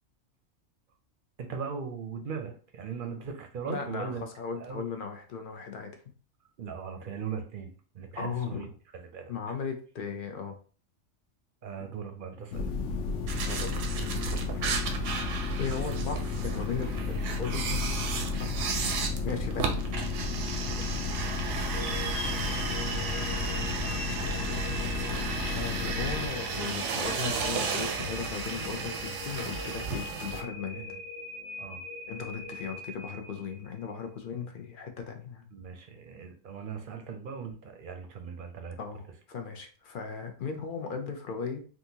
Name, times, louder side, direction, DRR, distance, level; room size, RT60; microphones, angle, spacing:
voice 1, 1.4-4.2 4.6-4.8 6.6-8.7 9.1-9.3 11.6-12.7 20.8-20.9 30.7-30.9 31.6-31.8 35.5-38.8, right 6 dB, 55° right, 5 dB, 0.6 m, -39 dB
voice 2, 3.6-5.9 8.2-8.7 9.3-10.6 13.5-14.6 15.6-17.9 18.4-18.5 19.2-19.9 25.5-30.8 32.1-35.5 38.8-41.6, left 6 dB, 60° left, 5 dB, 0.6 m, -37 dB
sound 1, 12.5-26.3, left 4 dB, 80° left, 0.9 m, -33 dB
sound 2, 13.3-30.4, right 5 dB, 85° right, 0.9 m, -34 dB
sound 3, 21.7-33.8, left 1 dB, 15° left, 0.9 m, -41 dB
3.7 x 2.4 x 2.7 m, 0.40 s
omnidirectional pair, 1.2 m